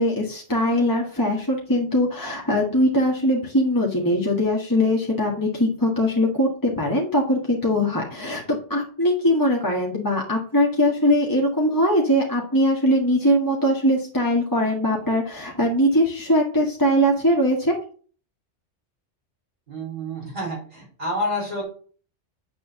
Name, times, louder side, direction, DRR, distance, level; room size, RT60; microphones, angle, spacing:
voice 1, 0.0-17.8, equal, 15° left, -2 dB, 1.6 m, -21 dB
voice 2, 19.7-21.6, equal, 50° right, -4 dB, 5.1 m, -29 dB
9.4 x 3.7 x 7.1 m, 0.42 s
omnidirectional pair, 1.3 m